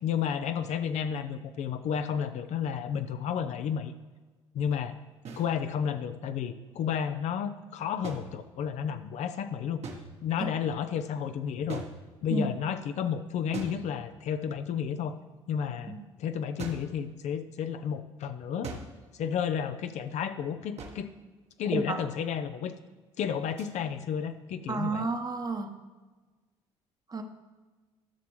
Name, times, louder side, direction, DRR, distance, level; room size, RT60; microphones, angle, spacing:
voice 1, 0.0-3.9 4.5-5.0 5.4-9.8 10.2-11.8 12.2-15.2 15.5-18.7 19.1-21.1 21.6-22.8 23.2-25.1, left 8 dB, 60° left, 9 dB, 0.6 m, -32 dB
sound 1, 5.2-5.5 8.0-8.9 9.8-10.4 11.7-12.4 13.5-14.4 16.6-17.0 18.6-19.1 20.8-21.2 23.6-23.7, right 4 dB, 50° right, 1.2 m, -42 dB
voice 2, 24.7-25.8 27.1-27.2, right 3 dB, 30° right, 6 dB, 1.0 m, -31 dB
12.5 x 6.0 x 3.1 m, 1.3 s
hypercardioid pair, 55°, 13 cm